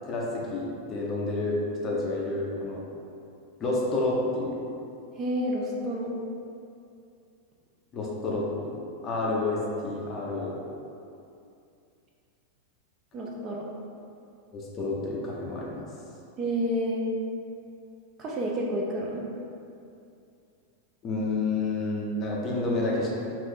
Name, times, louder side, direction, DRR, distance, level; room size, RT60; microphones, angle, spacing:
voice 1, 0.1-1.6 1.8-2.8 3.6-4.6 7.9-9.6 9.8-10.6 14.5-15.8 21.0-23.1, left 2 dB, 30° left, -4 dB, 0.6 m, -29 dB
voice 2, 5.2-6.1 13.1-13.6 16.4-17.0 18.2-19.2, equal, 30° right, -3 dB, 0.5 m, -29 dB
2.6 x 2.5 x 3.7 m, 2.6 s
figure-of-eight pair, 90°, 0 cm